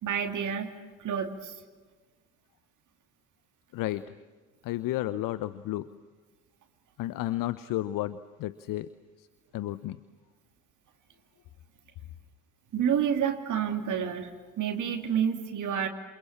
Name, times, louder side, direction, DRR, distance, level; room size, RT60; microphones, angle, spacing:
voice 1, 0.0-1.5 12.7-14.3 14.6-15.9, right 8 dB, 45° right, 4 dB, 2.8 m, -29 dB
voice 2, 3.7-4.1 4.6-5.9 7.0-8.9 9.5-10.0, left 15 dB, 50° left, 15 dB, 1.0 m, -32 dB
28.5 x 28.5 x 7.3 m, 1.4 s
figure-of-eight pair, 50°, 42 cm